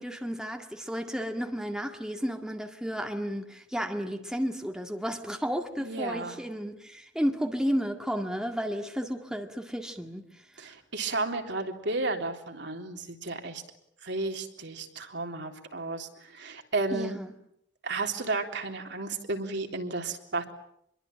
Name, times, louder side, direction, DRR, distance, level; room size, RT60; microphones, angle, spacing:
voice 1, 0.0-10.2 10.5-10.7 16.9-17.3, equal, 5° right, 2.1 m, -32 dB
voice 2, 5.8-6.4 10.6-13.6 14.0-17.2 17.8-20.4, right 3 dB, 65° right, 3.6 m, -33 dB
26.5 x 22.5 x 8.9 m
head